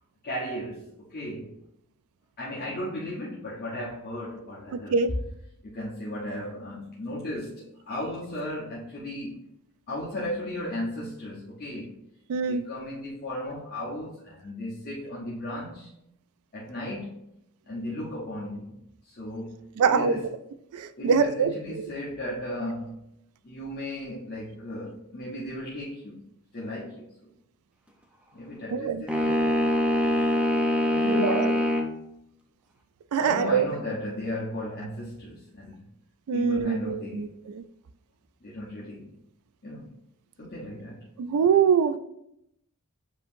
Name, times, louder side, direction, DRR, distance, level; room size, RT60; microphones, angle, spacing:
voice 1, 0.2-1.5 2.4-5.0 5.6-9.4 9.9-12.0 12.5-15.9 16.5-17.2 17.7-18.7 19.1-20.2 21.0-23.0 23.4-26.2 26.5-27.3 28.3-29.8 30.9-31.5 33.2-35.8 36.3-37.3 38.4-39.1 39.6-39.9 40.4-41.1, left 1 dB, 45° left, -7 dB, 0.9 m, -35 dB
voice 2, 4.7-5.1 12.3-12.6 19.8-20.2 20.7-21.9 28.7-29.0 31.1-31.6 33.1-33.7 36.3-37.6 41.2-42.0, right 6 dB, 75° right, 13 dB, 0.3 m, -24 dB
sound 1, 29.1-31.9, left 1 dB, 5° right, 0.5 m, -24 dB
7.5 x 2.8 x 2.5 m, 0.80 s
head